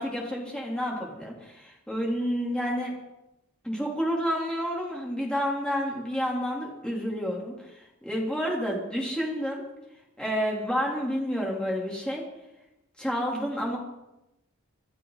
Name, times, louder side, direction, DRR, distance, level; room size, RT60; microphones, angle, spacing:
voice 1, 0.0-2.9 3.6-9.6 10.2-12.2 13.0-13.8, equal, 5° left, -3 dB, 3.7 m, -29 dB
25.5 x 12.0 x 4.2 m, 0.92 s
head